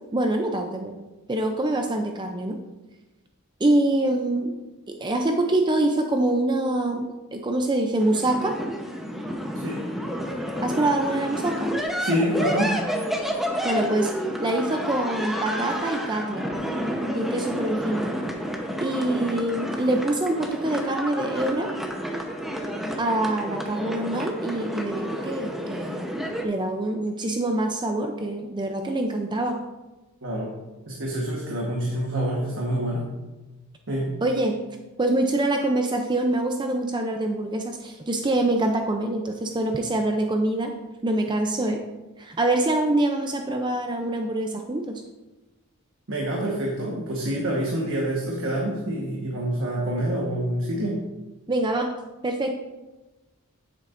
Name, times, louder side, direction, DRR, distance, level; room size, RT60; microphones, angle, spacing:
voice 1, 0.1-1.0 1.3-2.6 3.6-4.5 4.9-7.1 7.3-8.6 10.6-11.7 13.6-14.1 14.4-16.5 17.1-18.1 18.8-21.7 23.0-26.1 26.4-29.6 34.2-34.6 35.0-40.7 41.0-41.8 42.2-45.0 51.5-51.9 52.2-52.5, right 1 dB, 20° right, 4 dB, 0.5 m, -25 dB
sound 1, 8.0-26.4, equal, ahead, 0.9 m, -30 dB
voice 2, 12.0-12.8 30.2-30.5 30.9-33.0 33.9-34.2 46.1-51.0, right 1 dB, 60° right, -3 dB, 1.4 m, -26 dB
9.3 x 8.2 x 2.6 m, 1.1 s
head